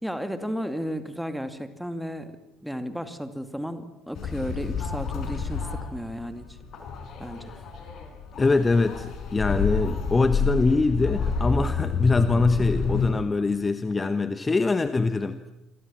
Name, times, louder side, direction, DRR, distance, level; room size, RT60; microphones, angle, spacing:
voice 1, 0.0-6.6 7.2-7.5, equal, ahead, 9 dB, 2.6 m, -34 dB
sound 1, 4.1-13.1, left 5 dB, 45° left, 5.3 m, -29 dB
voice 2, 8.4-15.4, left 3 dB, 20° left, 11 dB, 1.2 m, -23 dB
28.0 x 23.5 x 7.5 m, 0.96 s
figure-of-eight pair, 55°, 0 cm